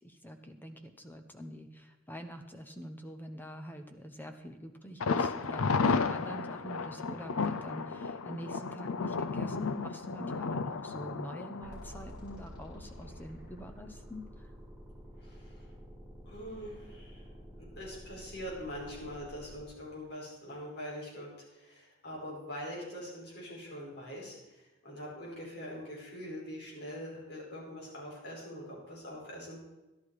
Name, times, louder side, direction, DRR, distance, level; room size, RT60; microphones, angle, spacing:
voice 1, 0.0-14.5, equal, 10° left, 6 dB, 0.8 m, -45 dB
Thunder, 5.0-12.8 13.1-13.2 13.6-13.7, left 4 dB, 75° left, 0.6 m, -33 dB
sound 1, 11.6-19.6, equal, 5° right, 5.2 m, -49 dB
voice 2, 15.2-15.7 16.2-17.3 17.6-29.7, equal, 55° left, -4 dB, 5.0 m, -43 dB
12.0 x 11.5 x 4.9 m, 1.0 s
head